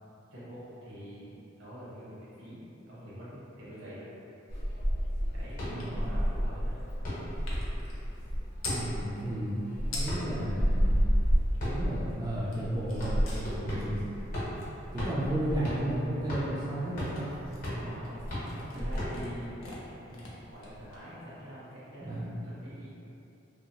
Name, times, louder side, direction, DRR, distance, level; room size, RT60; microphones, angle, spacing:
voice 1, 0.3-4.1 5.3-6.7 17.7-22.9, equal, 75° right, -9 dB, 1.0 m, -45 dB
sound 1, 4.5-19.5, equal, 45° left, 0.8 m, -31 dB
voice 2, 5.7-6.0 8.6-9.6 9.8-11.0 11.6-14.0 14.9-17.3 17.7-17.8 22.1-22.3, right 1 dB, 20° right, -9 dB, 0.3 m, -33 dB
sound 2, 5.8-5.9 6.2-8.9 9.6-9.7 9.8-10.4 10.8-11.9 12.2-21.4, left 2 dB, 80° left, 0.6 m, -45 dB
2.8 x 2.0 x 2.7 m, 2.9 s
head